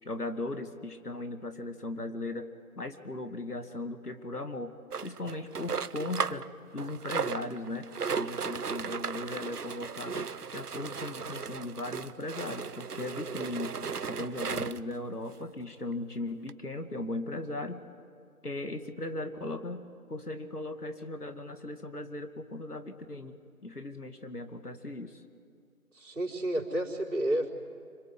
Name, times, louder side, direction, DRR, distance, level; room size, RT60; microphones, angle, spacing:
voice 1, 0.0-6.5 6.7-7.9 8.1-13.8 14.1-17.8 18.4-19.8 20.1-23.4 23.6-25.2, left 2 dB, 80° left, 7 dB, 2.4 m, -38 dB
sound 1, 4.9-6.5 6.8-14.9 15.6-15.7 15.9-16.0 16.5-16.6, right 6 dB, 90° right, 0.8 m, -36 dB
voice 2, 25.9-27.5, right 1 dB, 70° right, 0 dB, 4.5 m, -30 dB
26.0 x 25.0 x 8.2 m, 2.3 s
figure-of-eight pair, 175°, 45 cm